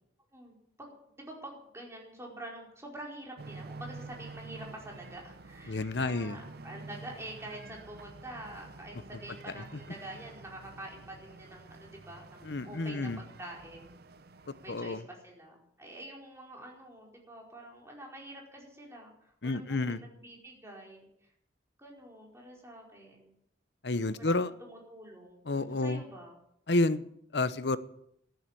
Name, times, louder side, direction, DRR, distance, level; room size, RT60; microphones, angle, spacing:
voice 1, 0.3-14.0 14.6-21.3 21.8-23.3 24.1-26.4, right 1 dB, 15° right, 4.8 m, -47 dB
sound 1, 3.4-15.0, right 3 dB, 60° right, 0.7 m, -49 dB
voice 2, 5.7-6.4 9.6-9.7 12.4-13.2 14.7-15.0 19.4-20.0 23.8-24.5 25.5-26.0 26.7-27.0 27.3-27.8, left 2 dB, 65° left, 0.9 m, -30 dB
14.0 x 10.5 x 8.5 m
head